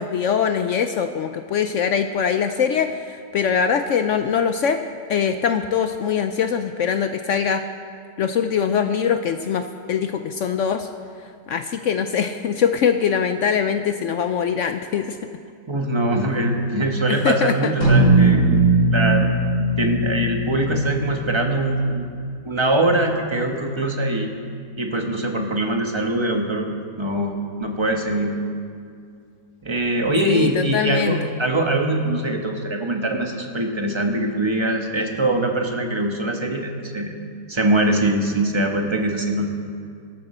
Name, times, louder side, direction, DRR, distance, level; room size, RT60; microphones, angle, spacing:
voice 1, 0.0-4.8 5.1-7.6 8.2-10.9 11.5-15.2 17.1-17.7 30.2-31.2, left 7 dB, 75° left, 8 dB, 0.7 m, -22 dB
voice 2, 15.7-18.7 18.9-19.2 19.8-22.0 22.4-24.3 24.8-26.7 27.0-28.4 29.6-37.1 37.5-39.5, right 1 dB, 20° right, 2 dB, 1.0 m, -22 dB
sound 1, 17.8-22.4, right 2 dB, 60° left, 4.0 m, -19 dB
17.0 x 13.0 x 4.3 m, 2.3 s
omnidirectional pair, 1.8 m